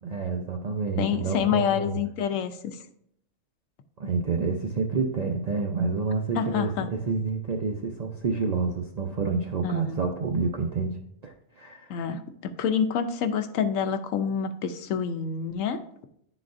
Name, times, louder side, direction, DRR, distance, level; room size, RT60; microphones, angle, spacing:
voice 1, 0.0-2.0 4.0-12.0, right 4 dB, 65° right, 2 dB, 0.4 m, -28 dB
voice 2, 1.0-2.8 6.4-6.9 9.6-10.0 11.9-15.8, left 7 dB, 85° left, 7 dB, 1.0 m, -27 dB
10.5 x 4.0 x 2.5 m, 0.72 s
omnidirectional pair, 1.3 m